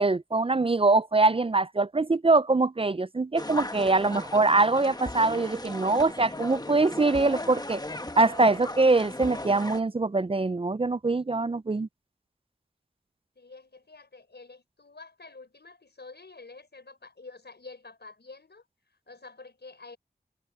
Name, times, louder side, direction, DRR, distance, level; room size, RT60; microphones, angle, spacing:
voice 1, 0.0-7.8 8.2-11.9, right 3 dB, 35° right, 0.4 m, -23 dB
sound 1, 3.4-9.8, left 1 dB, 25° left, 1.2 m, -37 dB
voice 2, 13.4-20.0, left 3 dB, 80° left, 5.4 m, -48 dB
wide cardioid pair, 45°, 17 cm